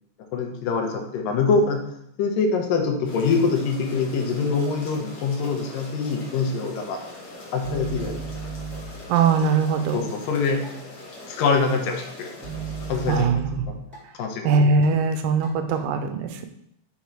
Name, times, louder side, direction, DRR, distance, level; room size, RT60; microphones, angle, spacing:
voice 1, 0.3-1.8 2.2-7.0 7.5-8.2 9.9-10.6 11.3-12.3 12.9-13.8 14.2-14.6, left 4 dB, 80° left, 3 dB, 2.4 m, -24 dB
sound 1, 3.0-13.2, left 2 dB, 50° left, 1.3 m, -42 dB
sound 2, 7.6-9.2 10.6-10.7 12.4-14.0 14.5-15.0 15.4-15.9, right 5 dB, 5° right, 1.6 m, -35 dB
voice 2, 9.1-10.0 13.1-13.5 14.5-16.5, right 4 dB, 85° right, 8 dB, 2.2 m, -21 dB
5.9 x 3.8 x 4.5 m, 0.75 s
omnidirectional pair, 3.9 m